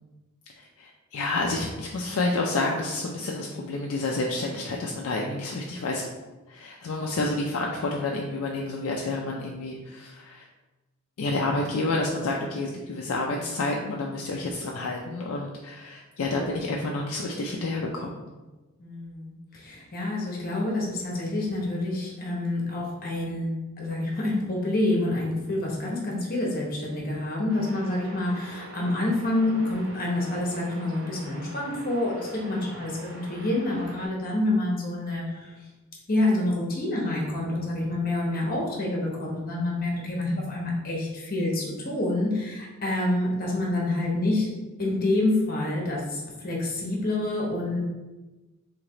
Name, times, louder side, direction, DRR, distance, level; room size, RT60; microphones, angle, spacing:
voice 1, 0.6-6.0 6.5-10.5 11.2-18.2, left 2 dB, 65° left, -1 dB, 0.4 m, -29 dB
voice 2, 18.8-35.5 36.1-44.5 44.8-47.8, left 2 dB, 40° left, -2 dB, 0.9 m, -27 dB
sound 1, 27.5-34.1, right 2 dB, 55° right, 1.2 m, -44 dB
3.2 x 2.8 x 3.8 m, 1.1 s
head